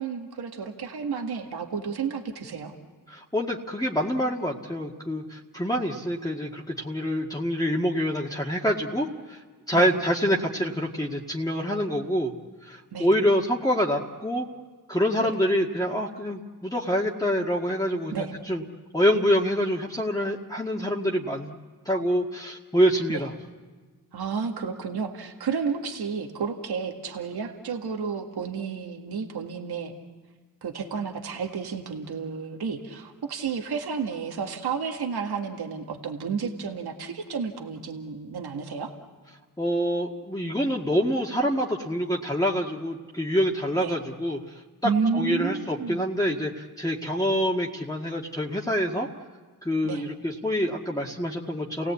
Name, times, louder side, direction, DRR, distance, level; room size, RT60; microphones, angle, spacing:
voice 1, 0.0-2.7 5.8-6.0 9.7-9.9 12.9-13.1 15.2-15.3 18.1-18.3 23.1-23.2 24.1-29.9 30.6-38.9 43.8-43.9 44.8-46.0 49.8-50.1, right 5 dB, 80° right, 3 dB, 1.9 m, -31 dB
voice 2, 3.1-9.4 9.7-12.3 12.6-14.5 14.9-18.6 18.9-21.6 21.9-23.3 39.6-49.1 49.6-51.9, equal, 10° left, -2 dB, 2.0 m, -26 dB
29.5 x 17.0 x 8.4 m, 1.4 s
cardioid pair, 50°, 38 cm